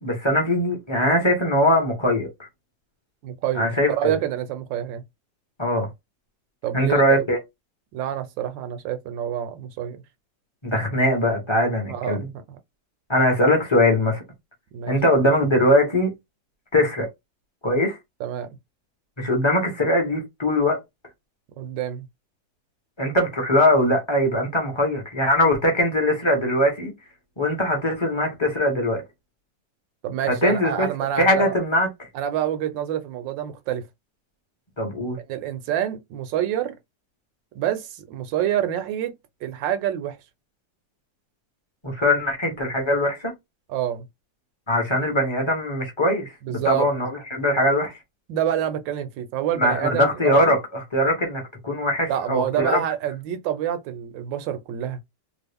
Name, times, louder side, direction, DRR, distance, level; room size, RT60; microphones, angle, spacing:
voice 1, 0.0-2.3 3.5-4.1 5.6-5.9 6.7-7.4 10.6-12.3 13.1-14.2 14.9-16.1 16.7-17.1 17.6-18.0 19.2-20.8 23.0-26.9 27.4-29.0 30.3-30.9 31.2-31.9 34.8-35.2 41.8-43.3 44.7-48.0 49.6-52.8, left 1 dB, 20° left, 0.7 m, -21 dB
voice 2, 3.2-5.0 6.6-7.2 7.9-10.0 11.9-12.2 12.5-12.6 14.7-15.0 18.2-18.5 21.6-22.0 30.0-31.5 32.1-33.9 35.3-36.8 37.5-39.1 39.4-40.2 43.7-44.0 46.4-46.9 48.3-50.5 52.1-55.0, right 11 dB, 80° right, 1.3 m, -27 dB
3.0 x 2.4 x 3.4 m
omnidirectional pair, 2.0 m